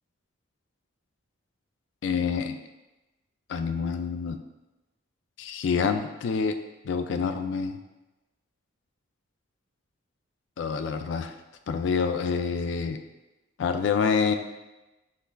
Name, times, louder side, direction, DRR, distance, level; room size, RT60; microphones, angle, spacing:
voice 1, 2.0-2.6 3.5-4.4 5.4-6.6 6.8-7.8 10.6-11.3 11.7-13.0 13.6-14.3, left 5 dB, 60° left, 8 dB, 0.3 m, -27 dB
5.6 x 3.2 x 2.3 m, 1.0 s
head